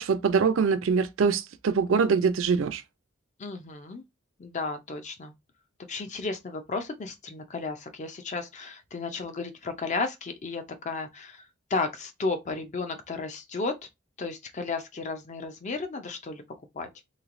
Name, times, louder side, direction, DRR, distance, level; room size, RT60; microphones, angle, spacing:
voice 1, 0.0-2.8, right 5 dB, 75° right, 0.4 m, -24 dB
voice 2, 3.4-4.0 4.4-5.3 5.9-11.5 11.7-13.8 14.2-16.4 16.7-16.9, left 3 dB, 35° left, 0.4 m, -33 dB
3.1 x 3.1 x 2.5 m
head